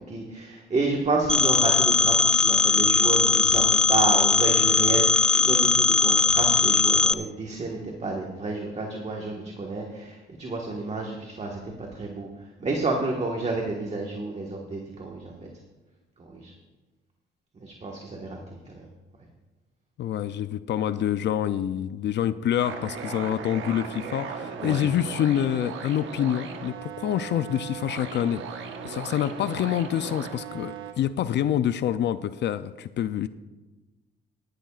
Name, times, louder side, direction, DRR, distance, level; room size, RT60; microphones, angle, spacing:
voice 1, 0.1-12.3 12.6-15.3 16.3-16.5 17.6-18.4 18.7-18.8 24.6-24.8, right 3 dB, 35° right, 0 dB, 1.5 m, -30 dB
Telephone, 1.3-7.1, left 3 dB, 5° left, 0.3 m, -20 dB
voice 2, 20.0-28.4 28.8-33.3, left 10 dB, 65° left, 13 dB, 0.5 m, -27 dB
sound 1, 22.6-30.9, right 6 dB, 75° right, 1.2 m, -37 dB
17.5 x 11.5 x 2.4 m, 1.2 s
cardioid pair, 90°, 20 cm